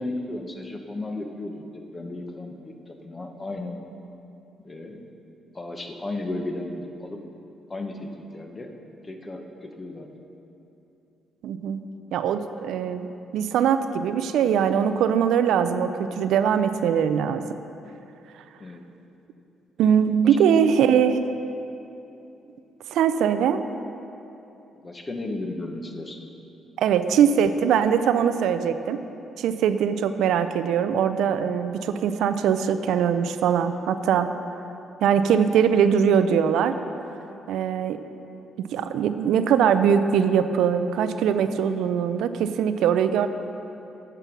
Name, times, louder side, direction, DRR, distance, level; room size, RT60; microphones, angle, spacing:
voice 1, 0.0-3.8 4.6-5.0 5.5-7.2 7.7-8.7 9.0-10.1 18.6-18.8 19.8-19.9 24.8-26.2 27.7-27.8, left 2 dB, 25° left, 4 dB, 1.0 m, -34 dB
voice 2, 11.4-11.8 12.1-17.4 19.8-21.3 22.9-23.6 26.8-29.0 29.4-34.3 35.0-36.8 37.5-38.0 38.7-43.3, right 8 dB, 80° right, 10 dB, 0.4 m, -21 dB
9.1 x 6.8 x 6.1 m, 2.9 s
cardioid pair, 90°, 0 cm